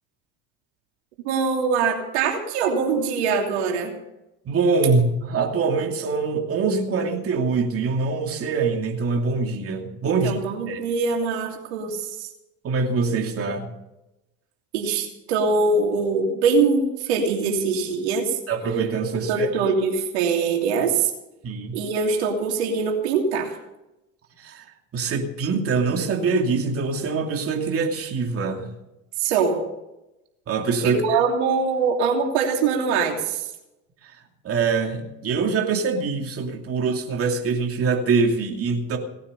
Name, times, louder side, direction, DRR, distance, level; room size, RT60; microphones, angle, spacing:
voice 1, 1.2-3.9 10.0-12.3 14.7-18.4 19.3-21.1 21.7-23.5 29.2-29.6 30.8-33.5, right 5 dB, 85° right, 1 dB, 3.0 m, -23 dB
voice 2, 4.4-10.4 10.7-10.8 12.6-13.7 18.5-19.5 21.4-21.8 24.4-24.6 24.9-28.7 30.5-31.0 34.4-39.0, right 4 dB, 45° right, 2 dB, 2.7 m, -24 dB
18.5 x 9.7 x 6.9 m, 0.92 s
supercardioid pair, 85°, 32 cm